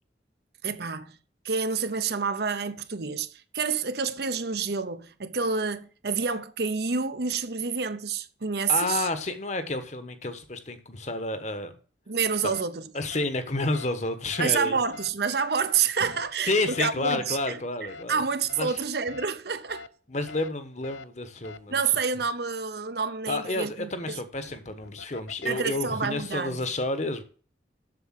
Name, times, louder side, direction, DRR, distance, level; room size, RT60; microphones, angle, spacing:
voice 1, 0.6-1.2 1.4-3.3 3.5-9.1 12.1-12.9 14.4-19.8 21.7-24.2 25.4-26.6, right 5 dB, 60° right, 0.8 m, -28 dB
voice 2, 8.7-11.7 12.4-12.5 12.9-14.8 16.5-18.2 18.6-18.8 20.1-21.8 23.3-27.2, left 2 dB, 40° left, 1.2 m, -30 dB
sound 1, 12.5-12.6 13.1-13.3 13.7-13.9 14.3-14.5 14.9-15.1 16.1-16.3 16.7-16.9 17.3-17.5 17.9-18.0 18.5-18.6 19.1-19.3 19.7-19.9 20.3-20.5 20.8-21.0 21.4-21.6 24.4-25.8, left 4 dB, 80° left, 0.6 m, -43 dB
7.8 x 7.0 x 7.5 m
head